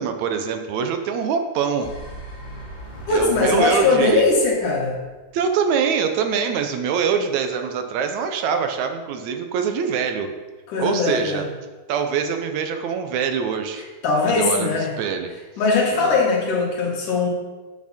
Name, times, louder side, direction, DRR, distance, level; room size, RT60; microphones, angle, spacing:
voice 1, 0.0-1.9 3.1-4.3 5.3-10.3 10.8-11.5 11.9-13.8 14.3-15.3 15.9-16.2, right 6 dB, 75° right, 7 dB, 1.9 m, -24 dB
sound 1, 1.7-5.6, equal, 20° left, 1.2 m, -40 dB
voice 2, 3.1-5.0 10.7-11.4 14.0-14.9 15.6-17.3, left 3 dB, 80° left, -2 dB, 3.3 m, -20 dB
9.9 x 7.2 x 4.2 m, 1.2 s
omnidirectional pair, 3.6 m